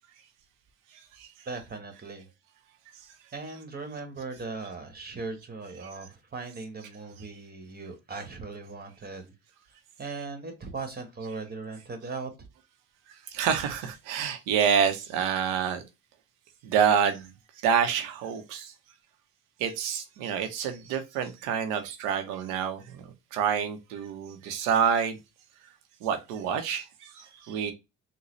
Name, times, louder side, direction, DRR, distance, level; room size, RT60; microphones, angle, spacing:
voice 1, 1.5-2.3 3.3-9.3 10.0-12.3, right 3 dB, 30° right, 1.3 m, -38 dB
voice 2, 13.3-15.8 16.6-17.3 17.6-18.7 19.6-25.2 26.0-27.7, right 7 dB, 90° right, 0.8 m, -27 dB
3.9 x 2.2 x 3.1 m
supercardioid pair, 70°, 31 cm